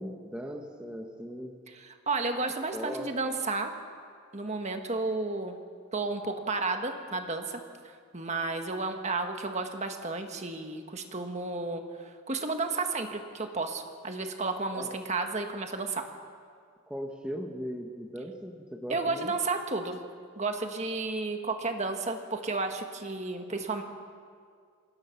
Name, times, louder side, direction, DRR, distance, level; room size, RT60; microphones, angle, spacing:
voice 1, 0.0-1.6 2.7-3.1 14.7-15.0 16.9-19.3, equal, 5° right, 1 dB, 1.3 m, -38 dB
voice 2, 1.7-3.7 4.3-5.6 5.9-16.1 18.9-20.0 20.4-23.8, right 3 dB, 30° right, 5 dB, 1.5 m, -32 dB
27.5 x 19.5 x 5.9 m, 2.1 s
head